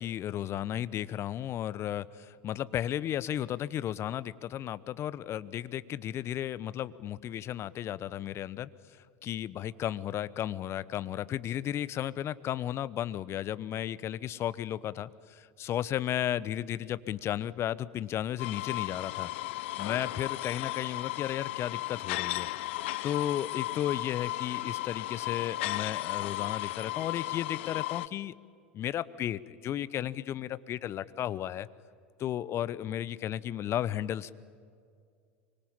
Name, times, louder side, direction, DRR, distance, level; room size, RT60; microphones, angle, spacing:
voice 1, 0.0-8.7 9.2-19.3 19.8-22.5 23.0-28.3 28.7-31.7 32.2-34.3, left 11 dB, 40° left, 18 dB, 0.9 m, -34 dB
sound 1, 18.4-28.1, left 18 dB, 65° left, 0.6 m, -35 dB
24.5 x 24.5 x 8.9 m, 2.2 s
hypercardioid pair, 80°, 7 cm